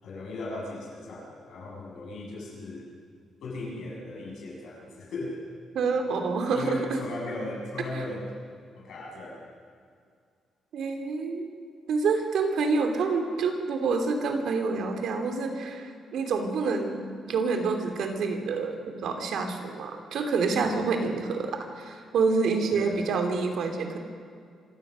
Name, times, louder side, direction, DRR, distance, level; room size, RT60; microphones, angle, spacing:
voice 1, 0.0-2.8 3.4-5.4 6.5-8.4 8.7-9.4 20.6-20.7 22.7-23.0, left 2 dB, 65° left, -3 dB, 7.1 m, -37 dB
voice 2, 5.7-7.0 10.7-11.5 11.9-24.0, right 4 dB, 65° right, 5 dB, 2.8 m, -27 dB
25.5 x 16.5 x 6.3 m, 2.2 s
cardioid pair, 160°, 0 cm